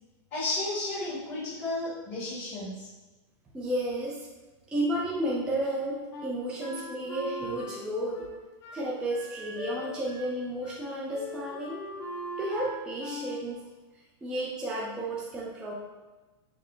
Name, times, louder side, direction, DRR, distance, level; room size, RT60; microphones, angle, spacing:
voice 1, 0.3-2.9, left 2 dB, 30° left, -10 dB, 1.4 m, -33 dB
voice 2, 3.5-4.3 4.7-8.3 8.7-11.9 12.4-13.6 14.2-15.7, right 1 dB, 5° right, -6 dB, 0.4 m, -32 dB
Wind instrument woodwind instrument, 6.1-10.4 10.6-10.8 11.1-13.4, equal, 65° left, 1.1 m, -40 dB
5.9 x 2.0 x 3.2 m, 1.2 s
supercardioid pair, 170°, 15 cm